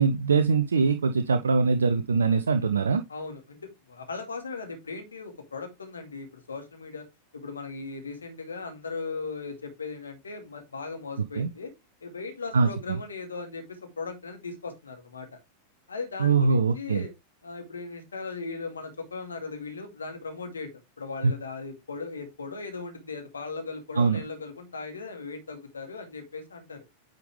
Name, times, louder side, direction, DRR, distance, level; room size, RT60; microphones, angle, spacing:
voice 1, 0.0-3.0 11.4-11.5 12.5-12.7 16.2-17.0 24.0-24.2, right 4 dB, 70° right, 0.6 m, -22 dB
voice 2, 3.1-7.1 7.3-11.7 12.0-15.3 15.9-17.1 17.4-20.7 21.0-26.8, left 4 dB, 75° left, 2.3 m, -38 dB
9.3 x 5.2 x 3.2 m
figure-of-eight pair, 90°, 0 cm